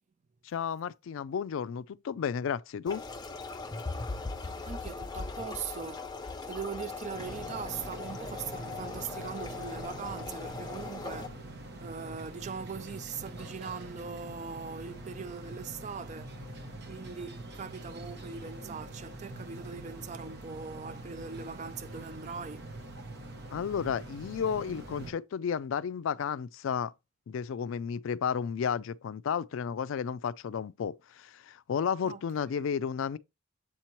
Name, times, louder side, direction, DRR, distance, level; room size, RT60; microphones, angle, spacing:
voice 1, 0.4-3.0 23.5-26.9 27.3-33.2, left 7 dB, 70° left, 0.3 m, -32 dB
sound 1, 2.9-11.3, left 3 dB, 20° left, 0.5 m, -39 dB
voice 2, 4.6-11.5 11.8-16.4 16.9-22.7 32.0-32.2 32.5-32.7, right 6 dB, 35° right, 0.3 m, -41 dB
sound 2, 7.1-25.1, right 2 dB, 50° right, 0.9 m, -44 dB
7.4 x 2.9 x 4.4 m
head